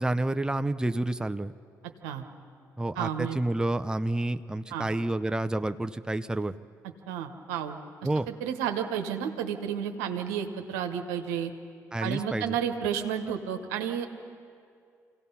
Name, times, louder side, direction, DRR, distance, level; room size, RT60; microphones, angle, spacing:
voice 1, 0.0-1.5 2.8-6.5 8.0-8.3 11.9-12.6, right 1 dB, 10° right, 9 dB, 0.7 m, -29 dB
voice 2, 3.0-3.4 4.7-4.9 7.1-7.8 8.3-11.5 12.0-14.1, right 8 dB, 90° right, 5 dB, 1.1 m, -31 dB
27.0 x 17.0 x 5.6 m, 2.3 s
hypercardioid pair, 50°, 8 cm